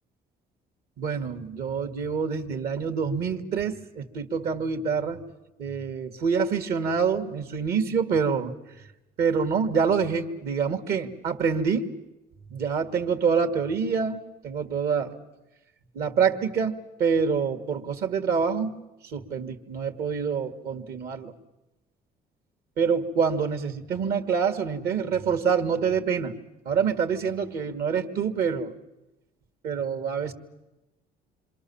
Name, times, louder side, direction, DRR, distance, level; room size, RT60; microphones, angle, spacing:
voice 1, 1.0-5.2 5.6-8.5 9.2-11.9 12.5-15.2 15.9-18.7 19.0-21.3 22.8-26.3 26.7-28.7 29.6-30.3, right 6 dB, 65° right, 6 dB, 2.0 m, -26 dB
27.0 x 25.5 x 7.1 m, 0.99 s
cardioid pair, 110°, 17 cm